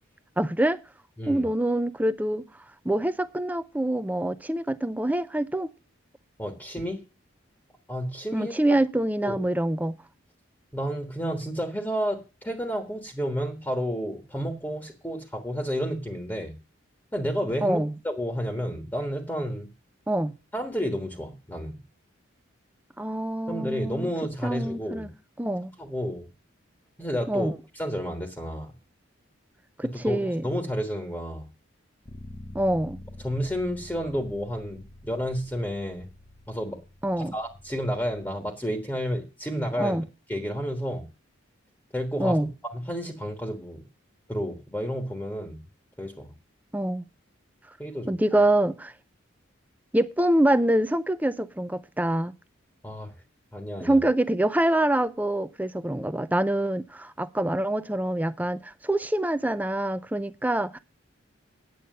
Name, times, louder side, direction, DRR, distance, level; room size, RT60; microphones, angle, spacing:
voice 1, 0.4-0.8 1.3-2.4 2.8-5.7 8.3-10.0 17.6-18.0 20.1-20.3 23.0-24.1 24.4-25.1 25.4-25.7 27.3-27.6 29.8-30.5 32.5-33.0 37.0-37.3 39.8-40.0 42.2-42.5 46.7-47.1 48.1-48.9 49.9-52.3 53.8-60.8, right 1 dB, 10° right, 0.5 m, -25 dB
voice 2, 6.4-7.0 7.9-8.5 9.2-9.4 10.7-16.6 17.1-19.7 20.5-21.8 23.5-25.1 25.8-26.3 27.0-28.7 30.0-31.4 33.2-36.1 36.5-36.8 37.3-40.0 40.3-41.0 41.9-42.4 42.7-43.8 44.3-45.6 46.0-46.3 47.8-48.4 52.8-53.1 53.5-54.0, equal, 10° left, 1.3 m, -31 dB
Bass guitar, 32.1-38.3, left 1 dB, 30° left, 0.9 m, -46 dB
9.4 x 8.3 x 6.5 m
head